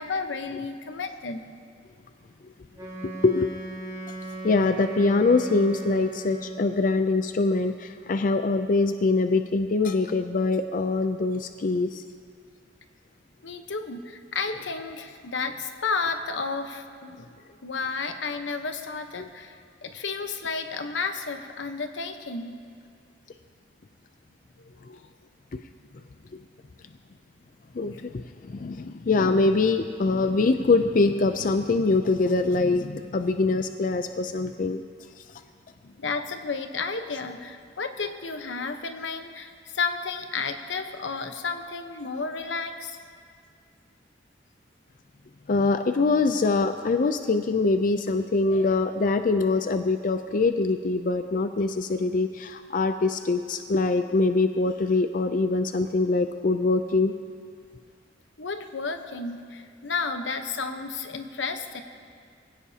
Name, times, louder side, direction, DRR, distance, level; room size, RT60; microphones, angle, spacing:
voice 1, 0.0-1.4 13.4-22.5 24.6-25.0 36.0-43.0 58.4-61.8, left 4 dB, 90° left, 7 dB, 1.0 m, -32 dB
Wind instrument woodwind instrument, 2.7-6.9, right 2 dB, 20° right, 3.3 m, -37 dB
voice 2, 3.0-3.5 4.1-4.2 4.4-12.0 24.9-25.0 25.5-25.6 27.7-34.8 45.5-57.1, left 3 dB, 45° left, 8 dB, 0.4 m, -24 dB
21.5 x 16.5 x 2.8 m, 2.1 s
head